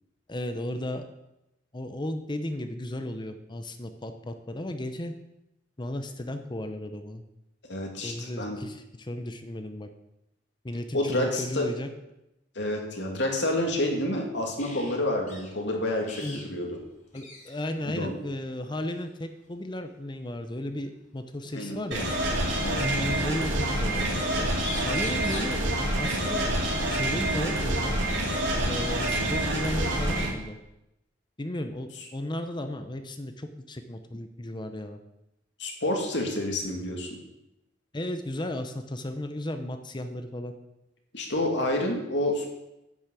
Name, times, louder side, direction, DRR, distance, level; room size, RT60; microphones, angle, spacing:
voice 1, 0.3-1.0 1.7-5.1 5.8-7.2 8.0-9.9 10.6-11.9 16.2-16.4 17.1-22.1 22.8-24.5 24.9-25.6 26.0-26.5 26.9-28.0 28.6-30.6 31.4-35.0 37.9-40.5, left 1 dB, 25° left, 8 dB, 0.8 m, -34 dB
voice 2, 7.7-8.6 10.9-11.7 12.6-16.8 17.9-18.1 21.5-21.8 22.6-22.8 35.6-37.2 41.1-42.5, left 1 dB, 65° left, 1 dB, 2.6 m, -29 dB
sound 1, 14.6-15.0 15.3-15.5 16.0-16.5 16.8-16.9 17.1-17.7 18.9-19.1 20.8-20.9 22.0-22.9 24.3-24.4 24.6-25.6 27.5-27.6 28.1-29.1, left 3 dB, 40° left, 3.0 m, -42 dB
sound 2, 21.9-30.3, right 1 dB, 75° right, 3.2 m, -27 dB
10.5 x 6.3 x 8.4 m, 0.90 s
head